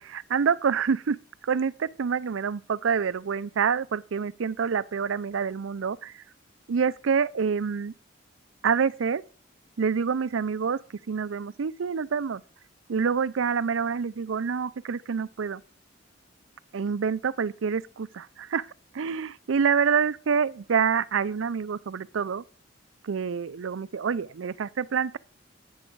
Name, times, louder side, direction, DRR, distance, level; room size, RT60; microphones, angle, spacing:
voice 1, 0.0-6.1 6.7-7.9 8.6-9.2 9.8-10.8 11.1-12.4 12.9-15.6 16.7-18.7 18.9-22.4 23.0-25.2, right 6 dB, 80° right, 0.5 m, -27 dB
11.5 x 7.9 x 4.6 m
head